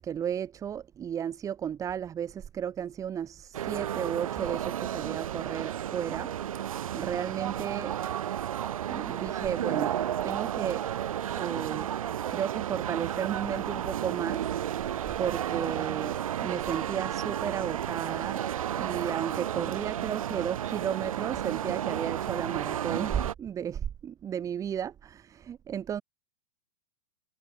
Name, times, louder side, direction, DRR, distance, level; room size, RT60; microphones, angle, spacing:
voice 1, 0.0-6.3 6.9-8.0 8.9-9.9 10.2-10.8 11.4-11.9 12.3-14.9 15.2-18.4 18.8-26.0, right 9 dB, 20° right, 3.4 m, -34 dB
sound 1, 3.5-23.3, right 10 dB, 80° right, 2.0 m, -32 dB
hypercardioid pair, 150°, 17 cm